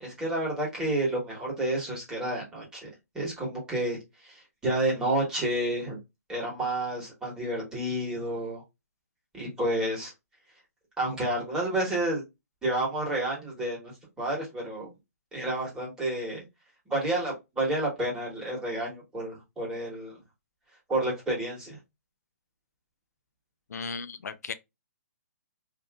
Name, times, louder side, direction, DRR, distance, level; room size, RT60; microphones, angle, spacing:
voice 1, 0.0-2.9 3.1-4.0 4.2-6.0 6.3-8.6 9.3-10.1 11.0-12.2 12.6-13.9 14.2-14.9 15.3-16.4 16.9-20.1 20.9-21.8, right 1 dB, 10° right, 1.1 m, -30 dB
voice 2, 23.7-24.5, left 5 dB, 90° left, 0.4 m, -36 dB
2.7 x 2.5 x 2.2 m
hypercardioid pair, 155°, 9 cm